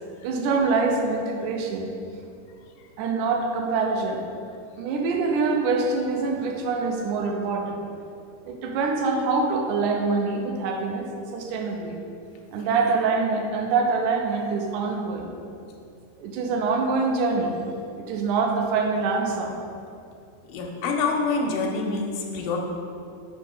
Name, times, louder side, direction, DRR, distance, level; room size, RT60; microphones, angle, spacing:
voice 1, 0.2-1.9 3.0-4.2 4.8-7.8 8.5-11.1 11.3-12.0 12.5-15.3 16.2-17.5 18.0-19.5, right 4 dB, 80° right, 2 dB, 1.9 m, -25 dB
voice 2, 20.5-22.6, left 4 dB, 85° left, 0 dB, 2.3 m, -26 dB
6.7 x 3.6 x 5.6 m, 2.5 s
omnidirectional pair, 4.0 m